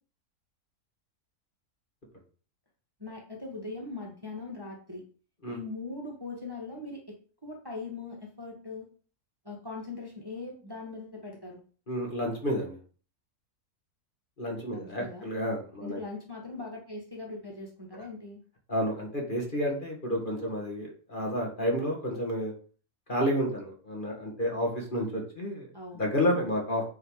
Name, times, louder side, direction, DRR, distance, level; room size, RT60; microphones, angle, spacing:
voice 1, 3.0-5.0 5.5-7.2 7.4-8.9 9.4-11.6 14.7-15.3 15.8-18.4 25.7-26.0, left 3 dB, 15° right, -2 dB, 1.6 m, -40 dB
voice 2, 11.9-12.8 14.4-16.0 18.7-22.5 23.1-25.7 26.0-26.8, equal, 35° left, 0 dB, 2.0 m, -30 dB
9.3 x 4.1 x 4.8 m, 0.40 s
omnidirectional pair, 1.6 m